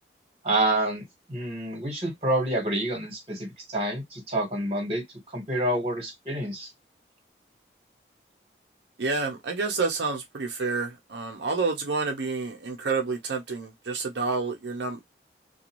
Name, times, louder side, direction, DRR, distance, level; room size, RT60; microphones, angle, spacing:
voice 1, 0.4-1.0 1.3-5.0 5.3-6.7, right 1 dB, 35° right, 1.4 m, -28 dB
voice 2, 9.0-15.0, right 4 dB, 85° right, 0.6 m, -29 dB
2.5 x 2.3 x 2.9 m
head